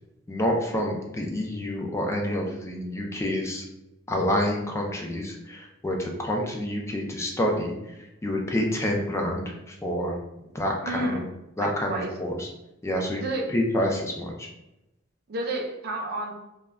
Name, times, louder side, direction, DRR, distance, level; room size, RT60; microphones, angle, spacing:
voice 1, 0.3-3.6 4.1-7.7 8.2-10.2 10.5-11.2 11.6-12.5 12.8-13.2 13.5-14.5, left 1 dB, 15° left, 0 dB, 0.3 m, -28 dB
voice 2, 10.8-11.3 11.6-12.1 13.2-13.5 15.3-16.3, right 1 dB, 55° right, 1 dB, 0.4 m, -30 dB
2.2 x 2.1 x 3.4 m, 0.92 s
head